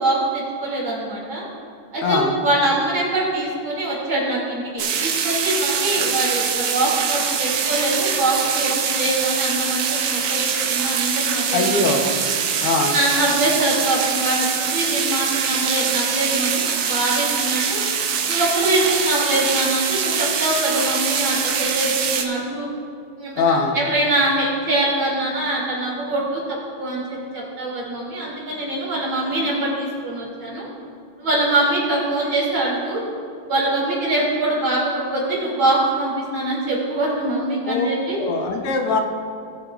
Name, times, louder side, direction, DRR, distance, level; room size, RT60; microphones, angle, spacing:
voice 1, 0.0-1.5 1.9-11.9 12.6-17.8 18.2-22.7 23.2-30.7 31.2-33.0 33.5-38.2, right 1 dB, 60° right, -5 dB, 3.5 m, -23 dB
voice 2, 2.0-2.4 11.5-12.0 12.6-13.0 23.4-23.8 37.7-37.9 38.2-39.0, left 3 dB, 90° left, 2 dB, 2.0 m, -21 dB
sound 1, 4.8-22.2, right 7 dB, 85° right, 1.8 m, -23 dB
18.5 x 8.2 x 2.5 m, 2.3 s
omnidirectional pair, 2.4 m